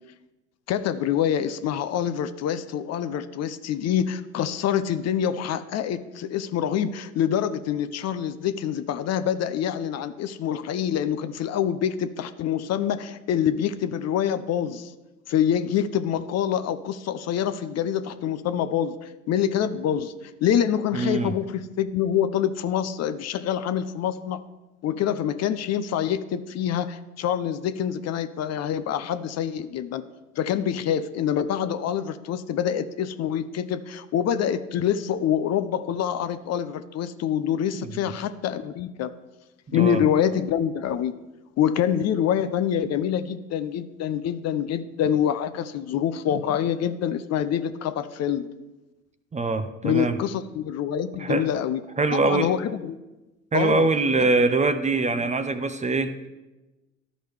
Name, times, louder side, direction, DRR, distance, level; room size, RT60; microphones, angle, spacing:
voice 1, 0.7-14.9 15.3-20.1 20.4-24.4 24.8-30.0 30.4-39.1 39.7-41.1 41.6-48.5 49.8-51.8 52.1-53.0 53.5-53.9 54.2-54.3, left 9 dB, 45° left, 11 dB, 0.6 m, -26 dB
voice 2, 20.9-21.3 37.8-38.0 39.7-40.0 49.3-50.2 51.2-51.5 52.0-52.5 53.5-56.3, right 3 dB, 20° right, 10 dB, 0.6 m, -23 dB
13.0 x 5.0 x 3.3 m, 1.1 s
hypercardioid pair, 65°, 38 cm